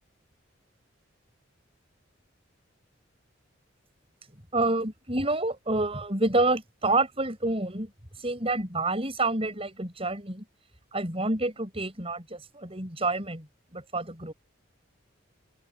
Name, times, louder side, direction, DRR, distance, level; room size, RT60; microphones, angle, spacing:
voice 1, 4.5-7.9 8.2-10.4 10.9-13.5 13.7-14.3, right 2 dB, 30° right, 7.7 m, -28 dB
open air
head